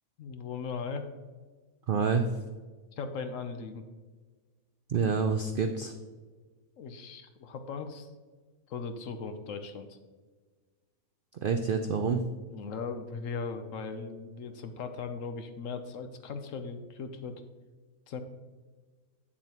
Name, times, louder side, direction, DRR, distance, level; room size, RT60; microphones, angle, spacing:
voice 1, 0.2-1.1 2.9-3.9 6.8-8.1 8.7-10.0 12.5-17.4 18.1-18.2, left 5 dB, 65° left, 8 dB, 1.0 m, -38 dB
voice 2, 1.9-2.3 4.9-5.9 11.4-12.2, right 5 dB, 80° right, 6 dB, 0.4 m, -27 dB
8.5 x 7.1 x 2.9 m, 1.4 s
omnidirectional pair, 1.6 m